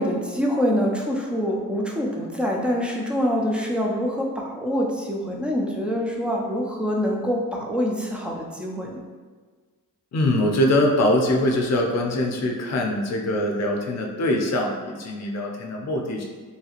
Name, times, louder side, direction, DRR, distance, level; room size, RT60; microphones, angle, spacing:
voice 1, 0.0-9.0, equal, 5° right, -1 dB, 0.3 m, -25 dB
voice 2, 10.1-16.2, left 1 dB, 55° left, 1 dB, 0.5 m, -23 dB
3.2 x 2.7 x 2.8 m, 1.5 s
wide cardioid pair, 165°, 32 cm